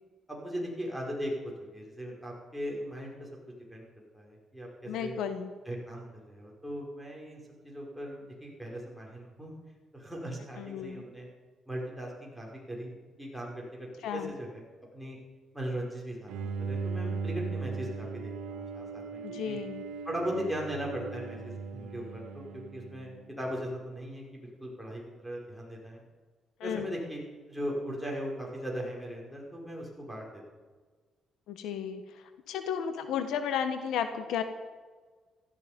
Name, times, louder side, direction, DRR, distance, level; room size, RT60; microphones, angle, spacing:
voice 1, 0.3-1.3 1.7-3.3 3.7-3.9 4.1-4.7 5.0-5.1 5.7-9.5 9.9-11.3 11.7-14.6 14.9-15.2 15.5-19.6 20.1-26.0 26.6-27.2 27.5-30.4, equal, ahead, -2 dB, 5.6 m, -38 dB
voice 2, 4.9-5.5 10.6-11.0 14.0-14.3 19.2-19.8 26.6-26.9 31.5-34.4, left 8 dB, 85° left, 9 dB, 1.3 m, -33 dB
Bowed string instrument, 16.3-23.5, right 4 dB, 85° right, 1.3 m, -38 dB
16.5 x 14.0 x 5.3 m, 1.4 s
cardioid pair, 90°, 0 cm